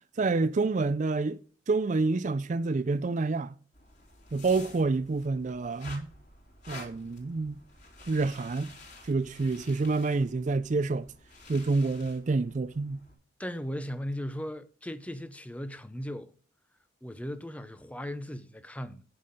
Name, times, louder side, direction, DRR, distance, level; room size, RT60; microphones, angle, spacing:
voice 1, 0.2-1.4 1.7-3.6 4.3-6.1 6.7-7.6 8.1-8.7 9.0-11.1 11.5-13.0, right 3 dB, 35° right, 0.4 m, -28 dB
sound 1, 3.7-13.1, left 2 dB, 35° left, 3.6 m, -50 dB
voice 2, 13.4-16.3 17.0-19.0, equal, 5° left, 0.6 m, -37 dB
9.8 x 5.5 x 6.4 m
head